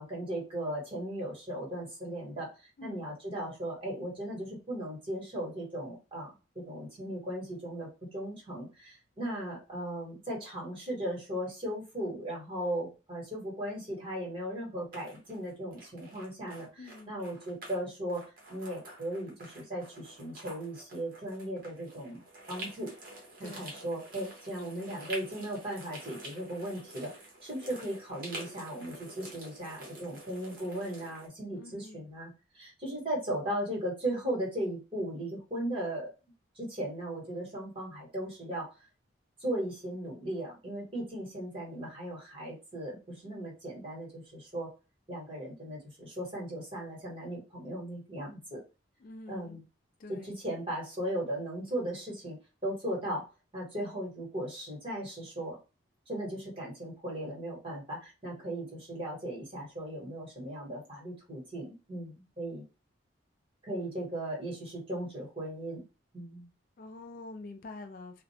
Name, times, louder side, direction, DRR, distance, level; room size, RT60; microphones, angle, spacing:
voice 1, 0.0-22.2 22.5-22.9 23.4-27.1 27.4-36.1 36.5-38.7 39.4-44.7 45.1-48.6 49.3-49.6 50.1-52.4 52.6-53.3 53.5-55.6 56.1-62.6 63.6-65.8 66.1-66.5, right 1 dB, 25° right, 1.2 m, -37 dB
voice 2, 2.8-3.1 16.8-17.2 23.4-23.8 31.5-32.1 49.0-49.6 50.0-50.3 66.8-68.2, left 2 dB, 45° left, 0.3 m, -46 dB
sound 1, 14.9-17.8 18.1-31.3, right 2 dB, 45° right, 0.7 m, -48 dB
2.4 x 2.0 x 2.7 m
head